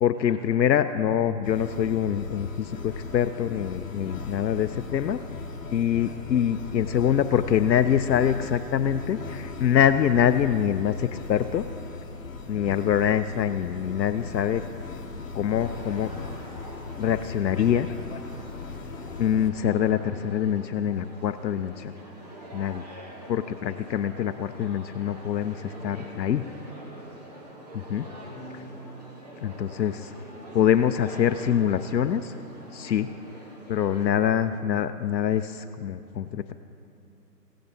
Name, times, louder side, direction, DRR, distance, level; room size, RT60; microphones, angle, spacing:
voice 1, 0.0-5.2 5.7-11.6 12.5-14.6 15.3-16.1 17.0-17.9 19.2-21.9 22.5-22.9 23.3-26.4 27.7-28.1 29.4-30.1 30.5-32.3 32.7-33.1 33.7-36.5, left 9 dB, 85° left, 10 dB, 0.6 m, -24 dB
sound 1, 1.4-19.5, left 4 dB, 50° left, 1.2 m, -38 dB
sound 2, 15.6-34.1, equal, 25° right, 1.0 m, -45 dB
voice 2, 17.4-18.2 28.3-28.8 30.2-30.5, left 3 dB, 35° left, 0 dB, 2.2 m, -45 dB
16.0 x 10.0 x 2.7 m, 2.8 s
hypercardioid pair, 165°, 50 cm